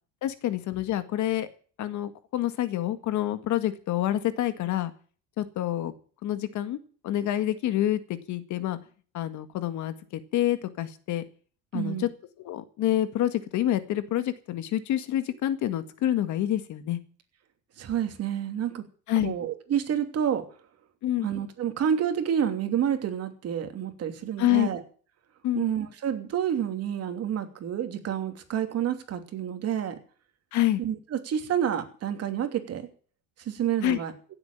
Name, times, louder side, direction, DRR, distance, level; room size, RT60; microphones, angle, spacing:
voice 1, 0.2-1.5 1.8-4.9 5.4-5.9 6.2-6.8 7.0-8.8 9.1-10.0 10.3-11.2 11.7-12.1 12.4-17.0 19.1-19.3 21.0-21.3 24.4-24.7 25.4-25.7 30.5-30.8 33.8-34.0, left 13 dB, 60° left, 11 dB, 1.9 m, -27 dB
voice 2, 11.7-12.1 17.8-18.8 19.2-20.4 21.2-24.8 25.5-30.0 30.8-32.9 33.4-34.1, right 9 dB, 50° right, 7 dB, 3.0 m, -29 dB
16.5 x 7.9 x 9.0 m, 0.43 s
cardioid pair, 115°, 33 cm